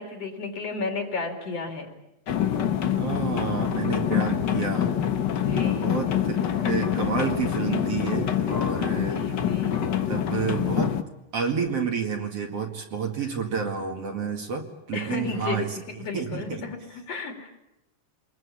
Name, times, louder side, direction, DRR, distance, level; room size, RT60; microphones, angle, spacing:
voice 1, 0.0-1.9 5.4-5.9 9.1-9.7 14.9-15.7 16.0-17.5, left 3 dB, 50° left, 3 dB, 4.1 m, -33 dB
sound 1, 2.3-11.0, left 9 dB, 80° left, 0.9 m, -26 dB
voice 2, 2.9-4.9 5.8-9.2 9.6-9.7 10.1-10.9 11.3-15.8 16.1-16.6, right 6 dB, 50° right, 3 dB, 3.0 m, -30 dB
26.5 x 21.5 x 8.7 m, 0.90 s
omnidirectional pair, 3.8 m